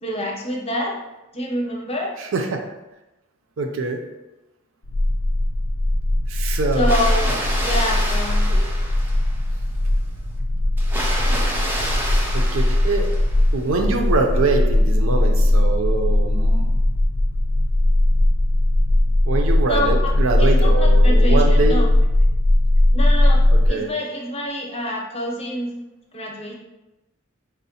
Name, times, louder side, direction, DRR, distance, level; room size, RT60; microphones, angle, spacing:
voice 1, 0.0-1.0 1.3-2.1 6.7-8.4 19.6-20.1 20.4-21.9 22.9-23.4 23.7-25.7 26.1-26.5, left 1 dB, 30° left, -1 dB, 0.6 m, -27 dB
voice 2, 2.2-2.6 3.6-4.0 6.3-6.9 8.5-8.7 12.3-13.1 13.5-16.7 19.2-21.8 23.7-23.9, right 3 dB, 70° right, 4 dB, 0.5 m, -24 dB
sound 1, 4.8-23.7, left 1 dB, 70° left, 0.4 m, -18 dB
Water, 6.7-9.5 10.8-13.6, right 1 dB, 10° right, 0.4 m, -29 dB
5.0 x 2.1 x 2.7 m, 0.99 s
head